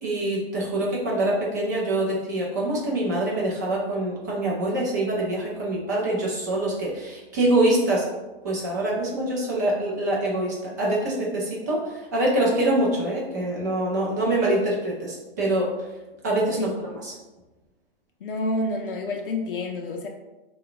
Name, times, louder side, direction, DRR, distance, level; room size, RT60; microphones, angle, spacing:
voice 1, 0.0-8.1 8.4-15.9 16.2-17.1, right 1 dB, 20° right, -4 dB, 0.4 m, -25 dB
voice 2, 18.2-20.1, left 2 dB, 65° left, 2 dB, 0.5 m, -28 dB
3.3 x 2.3 x 3.7 m, 1.1 s
hypercardioid pair, 165°, 30 cm